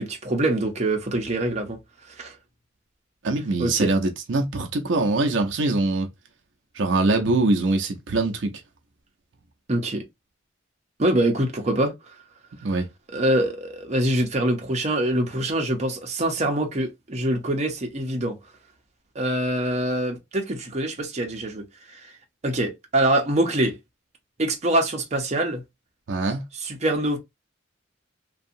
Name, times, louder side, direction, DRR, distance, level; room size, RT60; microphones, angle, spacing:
voice 1, 0.0-1.8 2.2-2.3 3.6-3.9 9.7-10.0 11.0-11.9 13.1-18.4 19.1-21.7 21.9-22.1 22.4-23.8 24.4-25.6 26.6-27.2, right 1 dB, 35° right, 0.7 m, -24 dB
voice 2, 3.2-6.1 6.7-8.5 12.6-12.9 26.1-26.5, right 2 dB, 80° right, 0.6 m, -23 dB
2.7 x 2.3 x 2.6 m
head